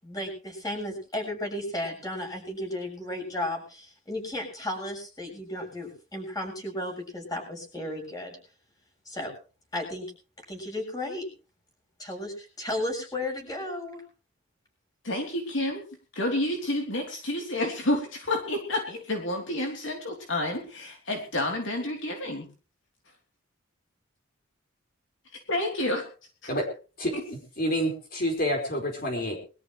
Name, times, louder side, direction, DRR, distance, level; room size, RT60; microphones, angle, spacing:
voice 1, 0.0-8.4 9.1-9.3 9.7-10.1 10.5-11.3 12.0-14.0, left 1 dB, 20° left, 2 dB, 7.0 m, -34 dB
voice 2, 15.0-15.8 16.1-22.5 25.5-26.1 26.4-26.6 27.1-27.2, left 1 dB, 60° left, 2 dB, 3.3 m, -29 dB
voice 3, 27.6-29.4, equal, 45° left, 2 dB, 4.8 m, -28 dB
22.5 x 13.5 x 3.2 m, 0.37 s
head